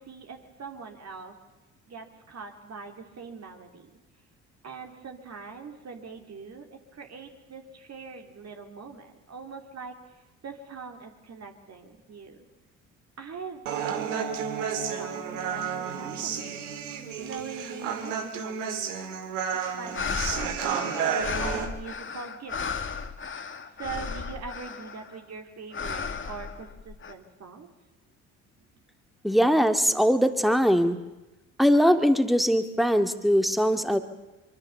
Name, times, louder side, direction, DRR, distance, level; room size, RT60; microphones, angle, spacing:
voice 1, 0.0-1.3 1.9-4.0 4.6-12.4 13.2-16.7 17.2-20.0 20.3-22.8 23.8-27.7, right 5 dB, 45° right, 4 dB, 2.9 m, -42 dB
Human voice, 13.7-21.6, right 7 dB, 80° right, 2.2 m, -31 dB
sound 1, 19.6-25.1 25.7-27.1, left 5 dB, 35° left, 2.1 m, -34 dB
voice 2, 29.2-31.0 31.6-34.0, equal, ahead, 8 dB, 2.1 m, -21 dB
23.5 x 23.5 x 7.0 m, 1.0 s
hypercardioid pair, 55°, 37 cm